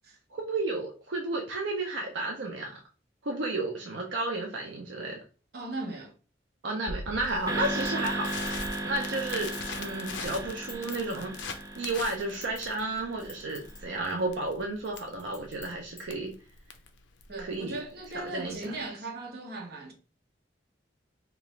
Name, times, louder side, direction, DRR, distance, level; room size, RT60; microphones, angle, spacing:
voice 1, 0.3-2.8 3.2-5.2 6.6-8.6 8.8-9.5 9.8-11.3 11.8-16.3 17.4-17.8 18.1-18.7, right 2 dB, 85° right, 0.5 m, -32 dB
voice 2, 5.5-6.1 17.3-19.9, right 2 dB, 60° right, 0.8 m, -38 dB
Crackle, 6.9-18.8, left 4 dB, 85° left, 0.4 m, -42 dB
sound 1, 7.5-13.8, right 1 dB, 20° right, 0.4 m, -36 dB
Chink clink, 7.8-10.0 10.5-11.1 11.8-12.9 13.2-13.8 14.1-14.2 14.8-16.0 16.6-16.7, left 4 dB, 55° left, 1.3 m, -48 dB
2.9 x 2.4 x 3.1 m
head